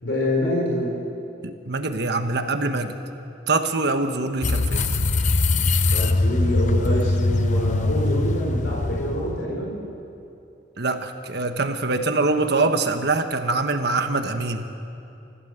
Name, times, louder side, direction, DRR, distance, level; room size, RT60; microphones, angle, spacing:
voice 1, 0.0-1.0 5.9-9.8, left 1 dB, 65° left, -3 dB, 4.6 m, -26 dB
voice 2, 1.4-3.0 3.5-4.8 10.8-14.7, right 3 dB, 60° right, 7 dB, 1.4 m, -24 dB
sound 1, 4.4-9.4, left 2 dB, 40° left, 0.8 m, -22 dB
26.5 x 16.0 x 7.9 m, 2.7 s
head